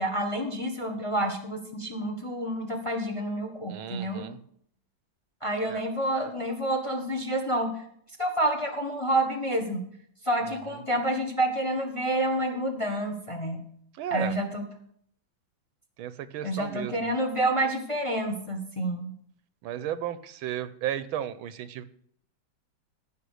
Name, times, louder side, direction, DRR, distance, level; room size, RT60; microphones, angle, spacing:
voice 1, 0.0-4.2 5.4-7.7 8.2-9.8 10.2-13.6 14.1-14.6 16.4-19.1, right 1 dB, 20° left, 5 dB, 1.0 m, -28 dB
voice 2, 3.7-4.4 5.7-5.8 10.5-10.8 14.0-14.4 16.0-17.1 19.6-21.8, right 11 dB, 90° right, 14 dB, 1.6 m, -34 dB
14.0 x 5.7 x 6.4 m, 0.65 s
omnidirectional pair, 2.2 m